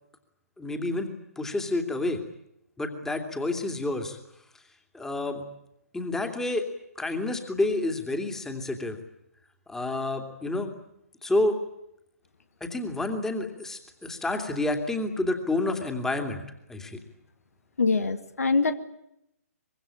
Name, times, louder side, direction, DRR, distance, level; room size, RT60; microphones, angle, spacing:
voice 1, 0.6-1.1 1.4-2.2 2.8-4.2 4.9-5.4 5.9-6.6 7.0-9.0 9.7-10.7 11.2-11.6 12.6-16.4 16.7-17.0, left 2 dB, 5° left, 5 dB, 2.8 m, -29 dB
voice 2, 17.8-18.7, left 4 dB, 70° left, 10 dB, 2.0 m, -24 dB
24.5 x 23.0 x 8.8 m, 0.82 s
figure-of-eight pair, 130°, 8 cm